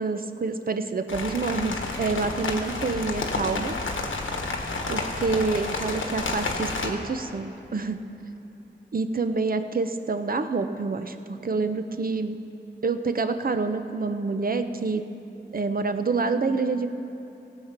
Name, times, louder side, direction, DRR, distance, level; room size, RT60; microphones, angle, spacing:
voice 1, 0.0-3.7 4.9-8.0 8.9-11.2 11.4-12.4 12.8-15.0 15.5-16.9, right 4 dB, 45° right, 8 dB, 0.7 m, -27 dB
sound 1, 1.1-6.9, left 3 dB, 85° left, 1.3 m, -30 dB
17.5 x 7.5 x 6.0 m, 3.0 s
cardioid pair, 60°, 20 cm